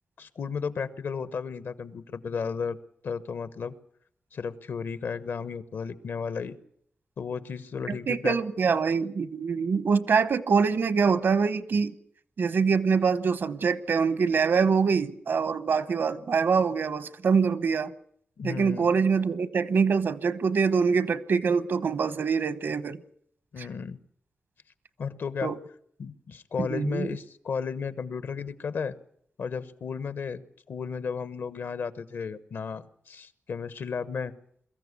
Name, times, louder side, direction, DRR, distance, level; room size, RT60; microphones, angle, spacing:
voice 1, 0.2-2.8 3.0-3.7 4.3-6.6 7.2-8.4 18.4-18.9 23.5-24.0 25.0-25.5 26.0-29.0 29.4-30.4 30.7-34.3, left 6 dB, 80° left, 1.1 m, -34 dB
voice 2, 7.9-11.9 12.4-17.9 18.4-23.0 25.4-25.6 26.6-27.2, right 5 dB, 70° right, 1.0 m, -24 dB
22.5 x 14.5 x 9.7 m
wide cardioid pair, 120°, 4 cm